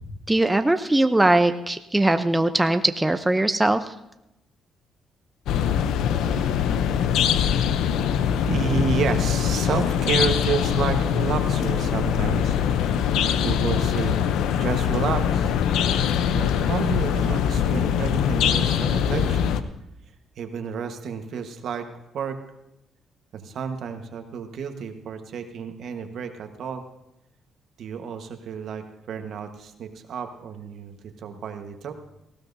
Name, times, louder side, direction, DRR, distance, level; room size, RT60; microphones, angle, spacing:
voice 1, 0.3-3.9, right 1 dB, 10° right, 8 dB, 0.6 m, -20 dB
sound 1, 5.5-19.6, left 8 dB, 85° left, 0.6 m, -23 dB
voice 2, 8.5-12.6 13.4-14.3 14.6-15.6 16.3-19.4 20.4-21.9 22.1-22.4 23.3-26.8 27.8-31.9, right 6 dB, 70° right, 6 dB, 1.3 m, -30 dB
18.5 x 16.0 x 2.7 m, 0.88 s
cardioid pair, 90°, 0 cm